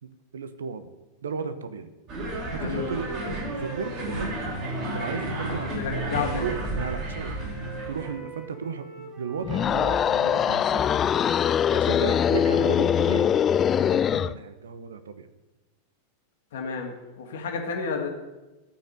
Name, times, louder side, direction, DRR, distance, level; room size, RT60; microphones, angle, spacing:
voice 1, 0.0-0.9 1.2-1.9 2.5-4.3 4.8-5.9 6.4-7.4 7.9-10.8 11.7-13.3 13.7-15.3, right 6 dB, 65° right, 11 dB, 0.9 m, -34 dB
sound 1, 2.1-8.2, right 1 dB, 40° right, 4.7 m, -32 dB
voice 2, 2.6-2.9 5.5-6.5 16.5-18.1, left 5 dB, 60° left, 2 dB, 2.3 m, -31 dB
Wind instrument woodwind instrument, 2.6-7.0 7.3-12.2, right 4 dB, 25° right, 3.1 m, -46 dB
sound 2, 9.4-14.4, left 9 dB, 25° left, 0.3 m, -22 dB
13.0 x 5.9 x 9.2 m, 1.1 s
figure-of-eight pair, 90°, 0 cm